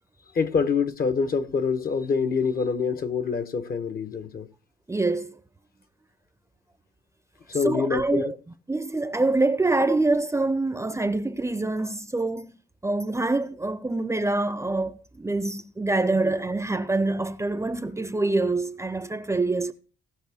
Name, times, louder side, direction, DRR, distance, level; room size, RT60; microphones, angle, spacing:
voice 1, 0.3-4.5 7.5-8.3 16.2-16.3, left 5 dB, 50° left, 1.1 m, -26 dB
voice 2, 4.9-5.4 7.6-8.3 8.7-12.5 12.8-19.7, right 2 dB, 15° right, 0.7 m, -25 dB
17.5 x 6.0 x 3.5 m
cardioid pair, 90°, 20 cm